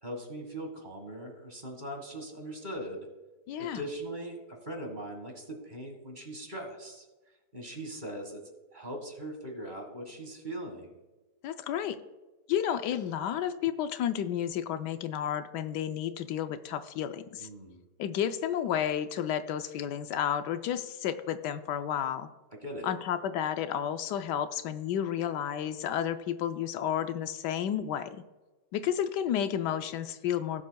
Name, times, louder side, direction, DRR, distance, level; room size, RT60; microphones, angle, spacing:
voice 1, 0.0-3.1 3.6-4.4 4.6-7.1 7.5-8.4 8.7-10.9 17.4-17.8 22.6-22.9, right 1 dB, 30° right, 3 dB, 1.7 m, -40 dB
voice 2, 3.5-3.8 11.4-12.0 12.5-17.5 18.0-22.3 22.8-28.2 28.7-30.6, left 9 dB, 80° left, 10 dB, 1.2 m, -31 dB
17.5 x 7.4 x 2.3 m, 1.2 s
omnidirectional pair, 1.8 m